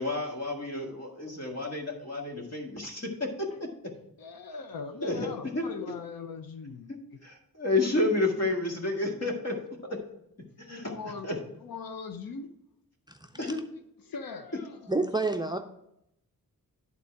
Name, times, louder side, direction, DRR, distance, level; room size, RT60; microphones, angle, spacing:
voice 1, 0.0-3.3 5.0-5.6 7.2-9.5 10.6-10.9 11.2-11.3 13.4-13.6, left 2 dB, 45° left, 1.8 m, -30 dB
voice 2, 4.2-6.9 10.8-12.5 14.0-14.9, left 5 dB, 80° left, 0.7 m, -40 dB
voice 3, 13.1-13.5 14.9-15.6, right 3 dB, 10° right, 0.5 m, -29 dB
11.0 x 4.2 x 4.7 m
wide cardioid pair, 125°, 35 cm